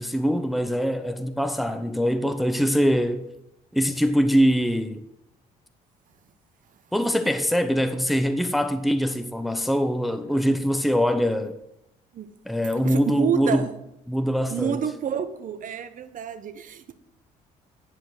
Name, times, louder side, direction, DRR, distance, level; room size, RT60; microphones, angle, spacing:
voice 1, 0.0-3.2 3.7-5.0 6.9-11.6 12.5-13.6 14.1-14.8, equal, ahead, 0.7 m, -23 dB
voice 2, 12.8-13.8 14.5-16.8, right 8 dB, 55° right, 0.9 m, -28 dB
10.0 x 5.2 x 6.2 m
supercardioid pair, 80°, 16 cm